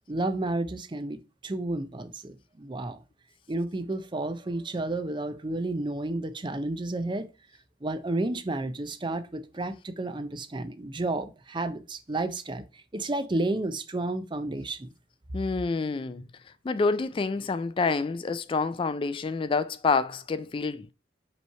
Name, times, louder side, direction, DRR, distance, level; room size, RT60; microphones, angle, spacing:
voice 1, 0.1-3.0 3.5-7.3 7.8-12.6 12.9-14.9, right 2 dB, 25° right, 0.6 m, -31 dB
voice 2, 15.3-16.3 16.6-20.9, left 4 dB, 30° left, 0.3 m, -28 dB
5.5 x 3.1 x 5.5 m
head